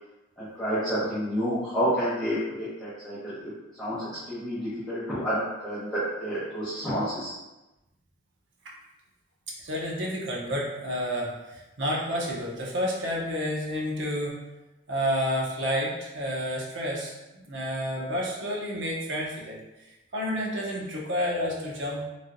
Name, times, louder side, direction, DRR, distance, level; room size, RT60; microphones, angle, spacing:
voice 1, 0.4-3.3 3.8-7.3, equal, 5° left, -15 dB, 0.8 m, -29 dB
voice 2, 9.6-14.4 14.9-22.0, equal, 65° right, -3 dB, 0.7 m, -30 dB
3.2 x 2.7 x 2.5 m, 1.0 s
head